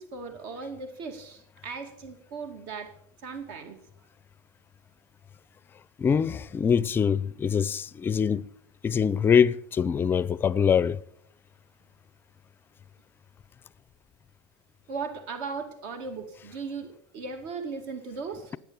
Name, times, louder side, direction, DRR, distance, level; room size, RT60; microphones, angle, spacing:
voice 1, 0.0-2.9 3.2-3.8 14.9-18.6, right 4 dB, 70° right, 2.4 m, -37 dB
voice 2, 6.0-8.5 8.8-11.0, left 7 dB, 20° left, 0.5 m, -24 dB
19.0 x 8.4 x 7.1 m
cardioid pair, 150°, 10 cm